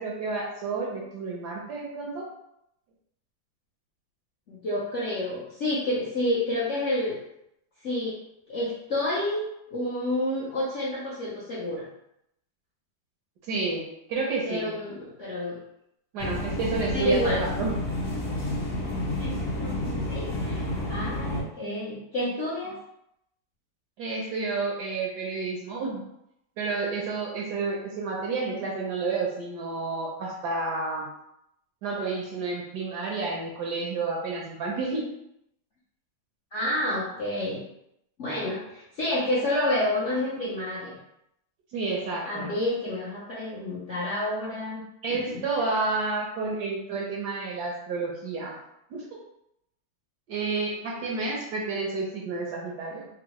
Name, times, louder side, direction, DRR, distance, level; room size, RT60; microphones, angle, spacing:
voice 1, 0.0-2.3 13.4-14.8 16.1-17.8 24.0-26.0 26.6-31.1 31.8-35.1 41.7-42.5 45.0-48.6 48.9-49.0 50.3-53.1, right 3 dB, 75° right, -2 dB, 1.0 m, -30 dB
voice 2, 4.5-7.2 7.8-8.2 8.5-9.4 9.7-11.9 14.4-15.6 16.9-17.4 19.2-22.8 36.5-37.6 38.2-41.0 42.3-44.8 45.1-45.4, left 1 dB, 65° left, -8 dB, 0.7 m, -29 dB
sound 1, 16.2-21.4, left 1 dB, 50° left, 1.1 m, -30 dB
3.6 x 2.0 x 2.9 m, 0.79 s
omnidirectional pair, 2.1 m